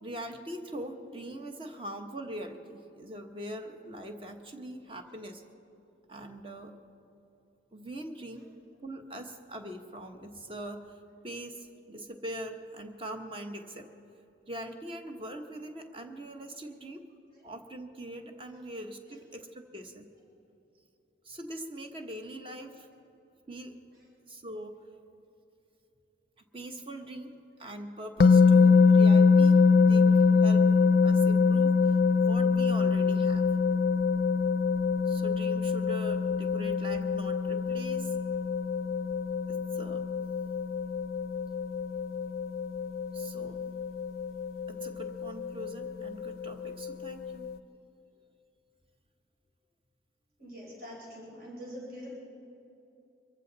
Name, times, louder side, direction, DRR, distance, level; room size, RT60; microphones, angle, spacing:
voice 1, 0.0-5.4 6.1-6.7 7.7-8.5 8.8-13.9 14.5-17.0 17.4-20.1 21.2-22.9 23.5-23.7 24.3-24.8 26.5-27.3 27.6-33.4 35.1-38.1 39.5-40.0 43.1-43.6 44.7-47.5, right 1 dB, 30° right, 5 dB, 1.1 m, -42 dB
sound 1, 28.2-47.6, left 5 dB, 50° left, 0.3 m, -24 dB
voice 2, 50.4-52.1, equal, 55° right, -4 dB, 4.2 m, -45 dB
24.0 x 15.0 x 4.0 m, 2.9 s
head